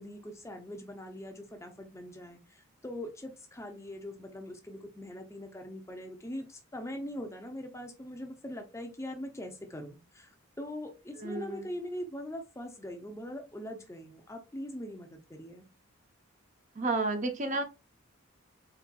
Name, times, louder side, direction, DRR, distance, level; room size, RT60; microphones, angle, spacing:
voice 1, 0.0-10.3 10.6-15.7, left 1 dB, 15° left, 4 dB, 0.5 m, -42 dB
voice 2, 11.2-11.7 16.8-17.6, right 2 dB, 35° right, 6 dB, 0.5 m, -31 dB
4.0 x 3.3 x 2.3 m, 0.29 s
head